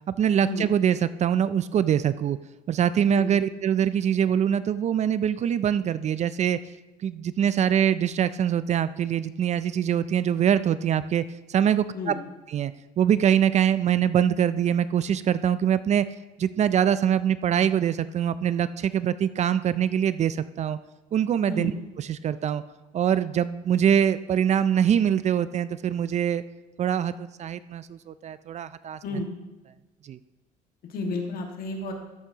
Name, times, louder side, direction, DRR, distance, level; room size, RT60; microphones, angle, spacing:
voice 1, 0.2-2.4 2.7-6.6 7.0-12.1 12.5-12.7 13.0-16.1 16.4-20.8 21.1-21.7 22.0-22.6 22.9-26.4 26.8-29.2 30.0-30.2, right 9 dB, 45° right, 15 dB, 0.4 m, -24 dB
voice 2, 30.8-31.9, left 2 dB, 60° left, 2 dB, 1.8 m, -31 dB
13.5 x 8.0 x 2.9 m, 1.1 s
cardioid pair, 110°, 17 cm